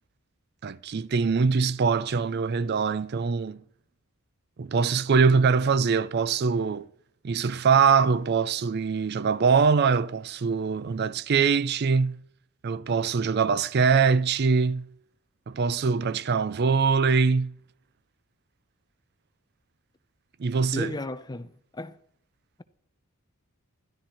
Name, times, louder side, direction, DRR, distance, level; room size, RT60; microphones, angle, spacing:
voice 1, 0.6-3.6 4.6-6.9 7.2-12.2 12.6-14.8 15.5-17.5 20.4-21.0, right 5 dB, 45° right, 0.4 m, -23 dB
voice 2, 20.7-22.0, left 2 dB, 20° left, 0.6 m, -35 dB
12.5 x 12.0 x 4.3 m
head